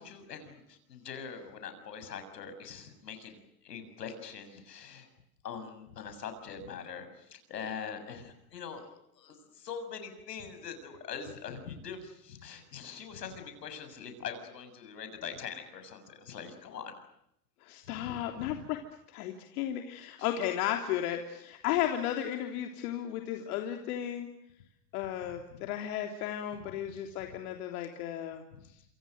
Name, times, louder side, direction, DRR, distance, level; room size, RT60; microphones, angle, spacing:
voice 1, 0.0-5.1 5.4-16.9 17.9-18.7 20.2-20.4 25.2-25.7 26.6-26.8 27.3-27.4 28.5-28.6, left 6 dB, 90° left, 8 dB, 7.0 m, -43 dB
voice 2, 17.6-18.8 19.1-24.3 24.9-28.4, left 11 dB, 65° left, 4 dB, 3.3 m, -34 dB
28.5 x 27.5 x 6.5 m, 0.78 s
hypercardioid pair, 105°, 47 cm